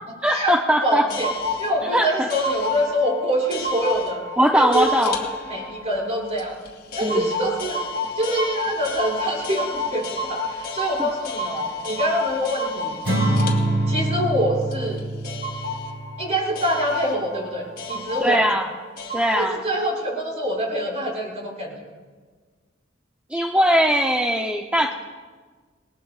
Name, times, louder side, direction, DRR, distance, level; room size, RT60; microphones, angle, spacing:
voice 1, 0.2-1.1 1.9-2.3 4.4-5.2 7.0-7.3 11.0-11.1 18.2-18.7 19.1-19.6 23.3-24.9, equal, 5° right, 2 dB, 0.7 m, -20 dB
sound 1, 0.8-19.4, left 2 dB, 55° left, 2.6 m, -31 dB
voice 2, 0.8-1.3 1.6-4.2 4.5-4.9 5.5-6.6 7.0-7.8 8.2-13.0 13.9-15.0 16.2-18.5 19.4-21.7, equal, 35° right, -4 dB, 6.4 m, -25 dB
Acoustic guitar / Strum, 13.0-16.4, right 1 dB, 90° right, 5.9 m, -24 dB
28.5 x 20.5 x 2.5 m, 1.5 s
head